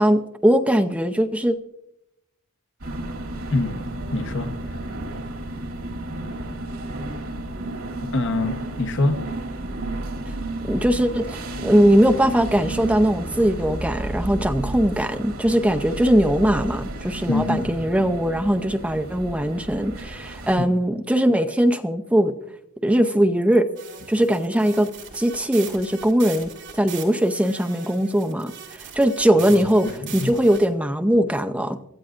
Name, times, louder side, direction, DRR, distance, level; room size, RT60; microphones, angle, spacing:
voice 1, 0.0-1.5 10.6-22.3 22.8-23.7 24.1-31.8, equal, 5° right, 0.6 m, -20 dB
sound 1, 2.8-20.6, right 1 dB, 80° right, 2.6 m, -32 dB
voice 2, 4.1-4.5 8.1-9.2 17.3-17.8 20.6-20.7 29.3-29.6 30.0-30.3, left 2 dB, 60° left, 1.0 m, -24 dB
sound 2, 23.8-30.7, right 7 dB, 55° right, 3.6 m, -40 dB
24.5 x 14.5 x 2.5 m
head